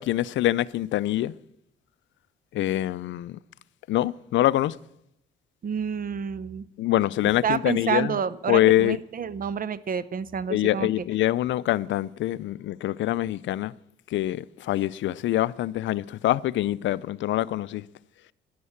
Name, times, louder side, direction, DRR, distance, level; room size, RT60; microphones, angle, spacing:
voice 1, 0.0-1.3 2.5-3.4 3.9-4.8 6.8-8.1 8.5-9.0 10.5-13.7 14.1-17.8, left 14 dB, 70° left, 0.5 m, -25 dB
voice 2, 5.6-6.6 7.4-10.9, right 7 dB, 45° right, 0.8 m, -29 dB
11.0 x 11.0 x 7.1 m
cardioid pair, 90°, 20 cm